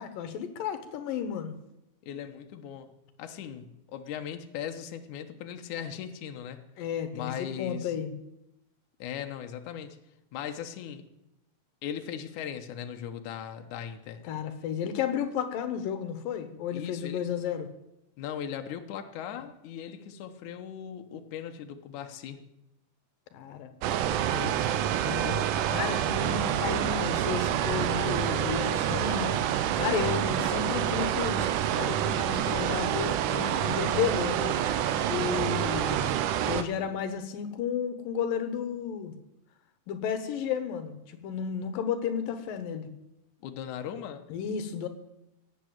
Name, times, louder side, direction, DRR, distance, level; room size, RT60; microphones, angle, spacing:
voice 1, 0.0-1.5 6.8-8.1 14.2-17.7 23.3-23.7 24.3-24.6 25.0-25.4 25.7-29.4 29.8-31.5 31.7-34.6 35.1-36.1 36.4-39.1 39.9-42.9 44.3-44.9, left 8 dB, 90° left, 9 dB, 2.9 m, -32 dB
voice 2, 2.0-2.9 3.2-6.6 7.1-7.9 9.0-10.0 10.3-11.0 11.8-14.2 16.7-17.2 18.2-22.4 43.4-44.2, left 9 dB, 70° left, 6 dB, 2.4 m, -38 dB
sound 1, 23.8-36.6, right 10 dB, 80° right, 2.3 m, -27 dB
17.0 x 8.3 x 8.9 m, 0.88 s
omnidirectional pair, 3.9 m